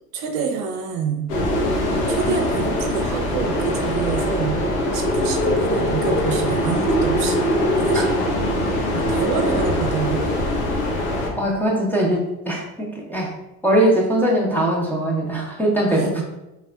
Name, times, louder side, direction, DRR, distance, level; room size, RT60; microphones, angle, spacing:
voice 1, 0.1-1.3 2.1-4.6 4.9-7.4 7.8-8.1 8.9-10.3 16.0-16.2, right 5 dB, 55° right, 3 dB, 0.7 m, -27 dB
sound 1, 1.3-11.3, left 1 dB, 75° left, 1.2 m, -22 dB
voice 2, 11.4-13.3 13.6-16.2, right 1 dB, 5° left, -3 dB, 1.0 m, -21 dB
4.0 x 3.5 x 2.4 m, 0.95 s
hypercardioid pair, 85°, 48 cm